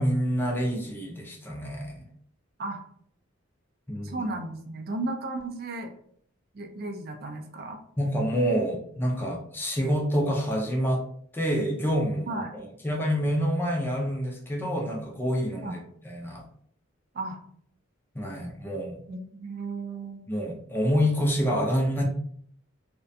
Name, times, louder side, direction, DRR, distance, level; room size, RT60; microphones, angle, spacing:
voice 1, 0.0-2.1 3.9-4.3 8.0-11.0 11.3-15.8 16.0-16.4 18.2-19.0 20.3-22.0, equal, 10° left, 0 dB, 0.4 m, -27 dB
voice 2, 4.0-5.9 6.5-7.8 12.3-12.5 15.6-15.9 17.1-17.4 19.1-20.2, right 2 dB, 50° right, 4 dB, 0.4 m, -34 dB
2.4 x 2.1 x 2.6 m, 0.63 s
head